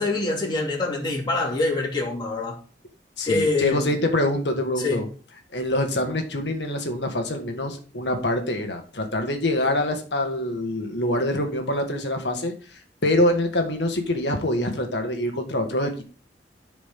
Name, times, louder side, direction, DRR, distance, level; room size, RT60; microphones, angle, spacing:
voice 1, 0.0-2.6 3.2-3.9 4.8-5.0, left 3 dB, 25° left, 2.7 m, -25 dB
voice 2, 3.2-5.1 5.5-12.5 13.0-16.0, left 1 dB, 75° left, 1.9 m, -25 dB
14.0 x 5.1 x 3.8 m
head